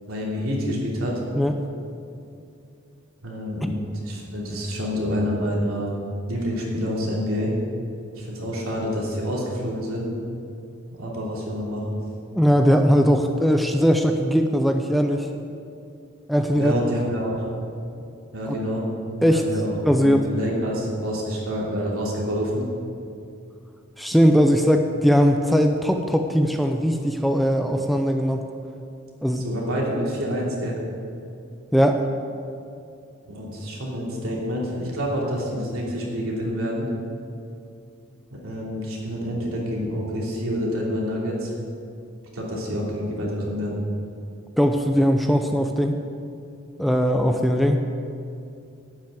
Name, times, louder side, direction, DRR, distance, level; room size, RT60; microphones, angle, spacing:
voice 1, 0.1-1.2 3.2-5.9 6.3-7.5 8.2-10.1 10.9-12.0 16.5-17.5 18.3-18.8 19.2-22.7 29.4-30.8 33.3-36.9 38.4-41.5 42.3-43.8, equal, 85° right, -4 dB, 3.1 m, -27 dB
voice 2, 12.3-15.3 16.3-16.9 19.2-19.4 19.9-20.3 24.0-28.4 29.2-29.4 31.7-32.1 44.6-46.0 46.8-47.8, equal, ahead, 4 dB, 0.5 m, -19 dB
11.5 x 6.2 x 9.1 m, 2.5 s
head